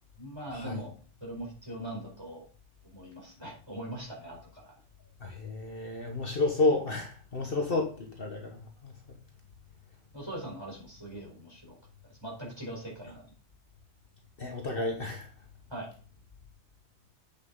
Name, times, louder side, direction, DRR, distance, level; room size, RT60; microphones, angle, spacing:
voice 1, 0.2-0.9 1.2-2.4 2.8-4.7 10.1-11.8 12.2-13.3 15.7-15.9, right 1 dB, 20° right, -3 dB, 4.4 m, -41 dB
voice 2, 5.2-7.9 8.2-9.2 14.4-15.3, left 2 dB, 50° left, 2 dB, 1.4 m, -31 dB
8.1 x 6.9 x 3.9 m, 0.39 s
omnidirectional pair, 1.2 m